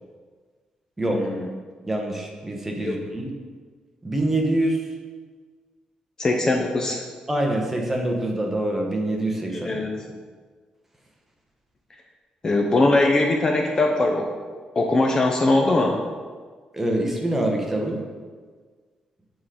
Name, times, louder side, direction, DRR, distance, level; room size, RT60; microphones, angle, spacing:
voice 1, 1.1-1.5 2.8-3.0 6.2-7.0 9.5-9.9 12.4-14.3 14.8-16.0, left 2 dB, 25° left, 1 dB, 0.6 m, -21 dB
voice 2, 1.8-3.3 4.0-4.8 7.3-9.8 16.7-18.0, right 1 dB, 10° right, 1 dB, 1.0 m, -25 dB
8.2 x 3.8 x 4.9 m, 1.5 s
cardioid pair, 140°, 2 cm